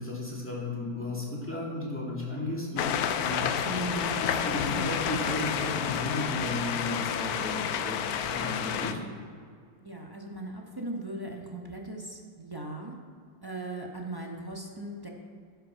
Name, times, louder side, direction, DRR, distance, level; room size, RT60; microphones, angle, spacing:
voice 1, 0.0-2.9 3.2-7.9 8.3-9.0, left 1 dB, 5° left, -5 dB, 2.5 m, -34 dB
sound 1, 2.8-8.9, left 8 dB, 75° left, 0.9 m, -30 dB
voice 2, 9.8-13.0 13.4-15.1, right 2 dB, 20° right, -1 dB, 0.7 m, -39 dB
14.0 x 5.7 x 5.7 m, 2.2 s
omnidirectional pair, 2.1 m